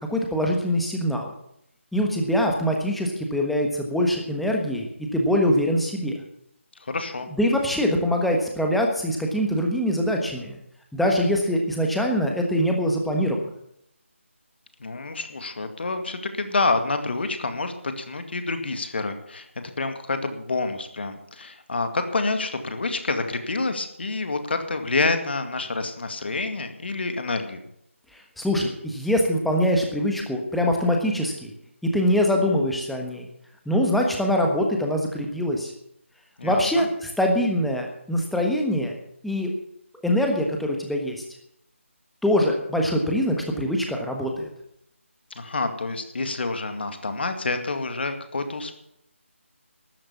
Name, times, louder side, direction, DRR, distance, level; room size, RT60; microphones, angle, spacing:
voice 1, 0.1-1.3 1.9-6.1 7.3-10.6 10.9-13.4 28.1-31.5 31.8-33.3 33.6-35.7 36.4-39.0 39.2-39.5 40.0-41.2 42.2-44.5, equal, ahead, 1 dB, 1.3 m, -23 dB
voice 2, 6.8-7.3 14.8-27.6 36.4-36.9 45.4-48.7, left 3 dB, 50° left, 7 dB, 2.1 m, -28 dB
13.5 x 11.5 x 7.1 m, 0.75 s
figure-of-eight pair, 160°, 7 cm